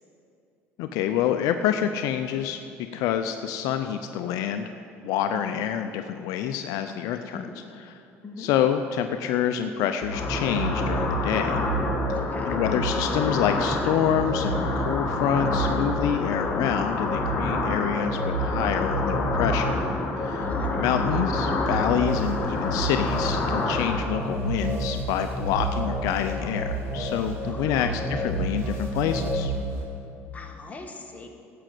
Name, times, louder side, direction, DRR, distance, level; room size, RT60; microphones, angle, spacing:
voice 1, 0.8-2.6 2.9-4.7 5.0-7.4 8.4-11.6 12.4-19.7 20.2-20.5 20.8-29.5, left 9 dB, 75° left, 7 dB, 0.6 m, -27 dB
voice 2, 7.2-7.5 8.2-8.5 12.1-12.6 20.4-20.9 27.4-28.1 30.3-31.3, left 3 dB, 25° left, 2 dB, 1.9 m, -41 dB
sound 1, 10.0-29.6, right 1 dB, 5° left, 2.1 m, -30 dB
sound 2, 10.1-24.0, left 3 dB, 40° left, 2.2 m, -29 dB
sound 3, 21.8-29.8, right 2 dB, 50° right, 3.1 m, -42 dB
12.5 x 7.6 x 7.8 m, 2.6 s
supercardioid pair, 85°, 6 cm